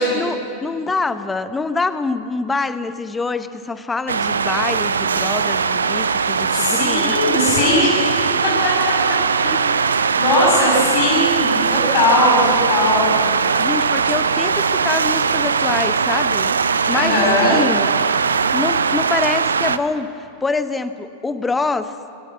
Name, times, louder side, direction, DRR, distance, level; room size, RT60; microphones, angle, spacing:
voice 1, 0.1-7.2 10.7-10.8 13.6-16.6 16.9-17.8 18.3-21.9, left 3 dB, 10° left, 12 dB, 1.0 m, -25 dB
sound 1, 4.1-19.8, right 5 dB, 70° right, 0.7 m, -20 dB
voice 2, 6.5-8.7 10.2-13.2 16.9-17.6, left 2 dB, 40° left, -5 dB, 6.6 m, -19 dB
26.0 x 13.0 x 8.5 m, 2.6 s
figure-of-eight pair, 90°, 0 cm